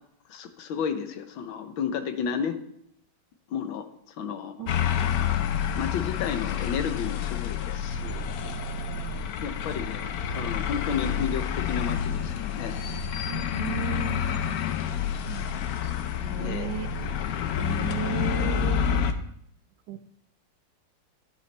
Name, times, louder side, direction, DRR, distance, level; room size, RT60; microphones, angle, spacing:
voice 1, 0.3-2.6 3.5-4.7 5.8-8.3 9.4-12.8 16.4-16.7, left 7 dB, 85° left, 9 dB, 1.7 m, -32 dB
sound 1, 4.7-19.1, left 8 dB, 65° left, 1.0 m, -29 dB
voice 2, 13.2-14.3 15.3-15.9 16.2-16.9 17.6-18.8 19.9-20.1, right 11 dB, 75° right, 11 dB, 1.2 m, -35 dB
12.5 x 8.3 x 3.3 m, 0.70 s
omnidirectional pair, 2.1 m